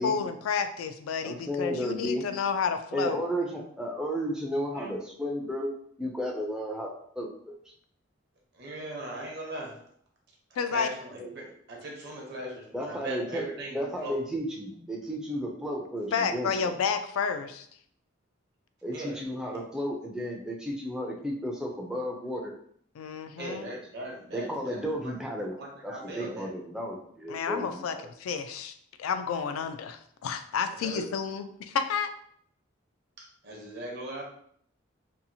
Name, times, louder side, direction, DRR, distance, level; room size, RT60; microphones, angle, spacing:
voice 1, 0.0-3.2 10.6-10.9 16.1-17.7 23.0-23.7 27.3-28.7 29.0-32.1, left 6 dB, 90° left, 8 dB, 0.3 m, -30 dB
voice 2, 1.2-2.2 2.9-5.7 6.0-7.3 12.7-13.5 13.7-16.7 18.8-22.5 24.3-25.6 25.8-28.0, equal, 5° right, -1 dB, 0.3 m, -33 dB
voice 3, 8.5-9.8 10.5-14.2 18.9-19.2 23.4-25.1 25.6-26.5 30.7-31.1 33.2-34.2, right 1 dB, 50° right, -1 dB, 0.7 m, -39 dB
2.7 x 2.4 x 2.7 m, 0.64 s
head